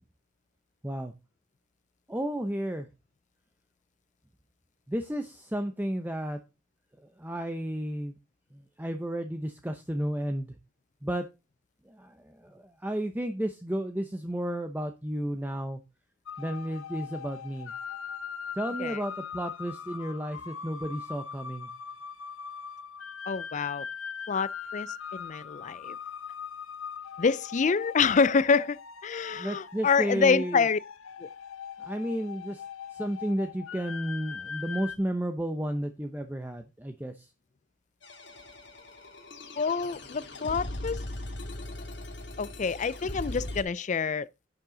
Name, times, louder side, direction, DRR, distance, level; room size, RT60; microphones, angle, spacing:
voice 1, 2.1-2.9 4.9-6.4 7.2-8.1 8.5-10.6 11.0-11.3 11.9-15.8 16.4-17.7 18.6-21.7 29.3-30.7 31.8-32.6 32.9-37.3, right 1 dB, 10° right, 0.7 m, -32 dB
sound 1, 16.3-35.0, left 7 dB, 90° left, 0.9 m, -41 dB
voice 2, 23.3-23.9 24.3-26.0 27.2-30.8 31.2-31.3 39.6-41.0 42.4-44.3, left 5 dB, 35° left, 0.4 m, -27 dB
sound 2, 38.0-43.6, left 1 dB, 60° left, 2.5 m, -39 dB
11.0 x 7.4 x 3.9 m
head